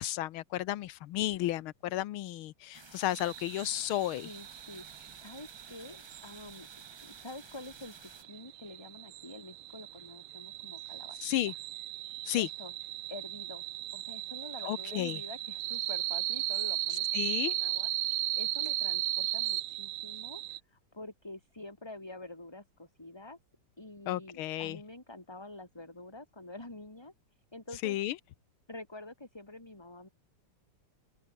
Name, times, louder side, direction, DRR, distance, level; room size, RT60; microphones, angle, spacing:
voice 1, 0.0-4.3 11.2-11.5 12.3-12.5 14.6-15.2 17.1-17.5 24.1-24.8 27.8-28.1, left 14 dB, 75° left, 1.6 m, -33 dB
sound 1, 2.7-8.2, right 3 dB, 20° right, 0.9 m, -54 dB
sound 2, 3.2-20.6, right 15 dB, 75° right, 1.4 m, -36 dB
voice 2, 4.2-6.7 7.0-11.2 11.4-11.5 12.4-12.7 13.1-17.9 18.2-23.4 23.8-27.1 27.5-28.0 28.7-30.1, left 2 dB, 10° left, 2.7 m, -47 dB
open air
omnidirectional pair, 2.4 m